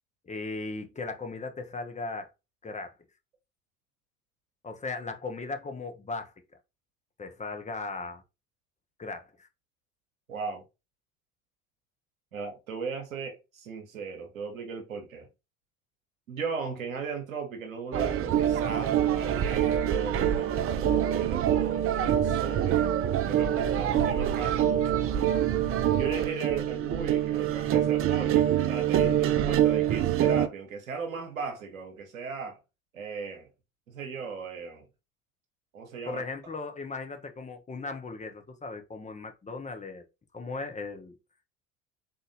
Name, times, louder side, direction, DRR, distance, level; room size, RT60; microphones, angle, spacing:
voice 1, 0.2-2.3 2.6-2.9 4.6-6.3 7.2-8.2 9.0-9.5 36.1-40.0 40.3-41.2, left 3 dB, 20° left, 1.0 m, -37 dB
voice 2, 10.3-10.6 12.3-15.3 16.3-22.9 23.3-25.3 25.9-32.6 32.9-33.5 33.9-34.8 35.7-36.2, right 5 dB, 85° right, 1.2 m, -37 dB
sound 1, 17.9-30.5, right 10 dB, 35° right, 0.5 m, -25 dB
3.9 x 3.5 x 2.7 m
hypercardioid pair, 70°, 40 cm